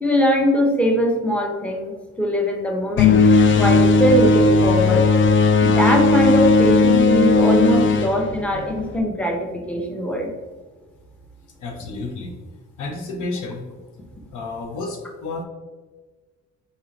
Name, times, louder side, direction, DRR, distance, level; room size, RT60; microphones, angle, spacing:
voice 1, 0.0-3.2 3.6-5.1 5.6-10.3, equal, 5° left, 1 dB, 0.8 m, -21 dB
sound 1, 3.0-9.0, left 3 dB, 40° left, 0.4 m, -16 dB
voice 2, 11.6-12.3 12.8-13.6 14.3-15.4, left 3 dB, 90° left, 3 dB, 0.8 m, -31 dB
4.1 x 3.6 x 2.9 m, 1.3 s
cardioid pair, 90°, 30 cm